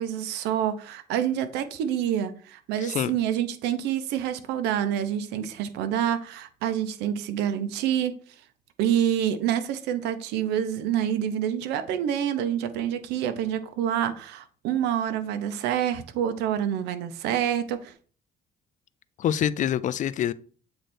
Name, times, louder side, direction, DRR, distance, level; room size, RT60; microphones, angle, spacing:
voice 1, 0.0-8.1 8.8-17.9, right 10 dB, 90° right, 0.7 m, -27 dB
voice 2, 19.2-20.3, left 10 dB, 50° left, 0.4 m, -25 dB
7.8 x 3.2 x 4.3 m
cardioid pair, 110°, 17 cm